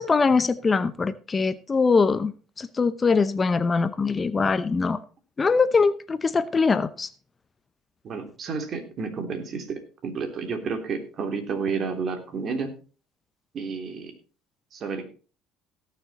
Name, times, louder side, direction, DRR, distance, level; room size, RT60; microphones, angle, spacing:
voice 1, 0.0-2.3 2.6-5.0 5.4-7.1, left 4 dB, 30° left, 15 dB, 0.8 m, -22 dB
voice 2, 8.0-12.7 13.5-14.1 14.7-15.0, right 5 dB, 50° right, 6 dB, 3.2 m, -31 dB
17.5 x 6.8 x 4.1 m, 0.37 s
supercardioid pair, 85°, 0 cm